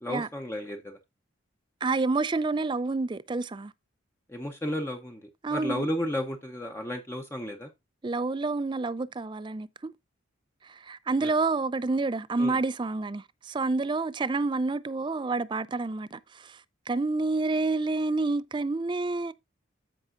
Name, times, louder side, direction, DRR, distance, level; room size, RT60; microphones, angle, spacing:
voice 1, 0.0-1.0 4.3-7.7 11.2-11.3 12.4-12.6, equal, 10° left, 0.7 m, -33 dB
voice 2, 1.8-3.7 5.4-5.9 8.0-9.9 10.6-16.6 16.9-19.3, right 3 dB, 25° right, 0.4 m, -28 dB
13.5 x 5.4 x 2.5 m
head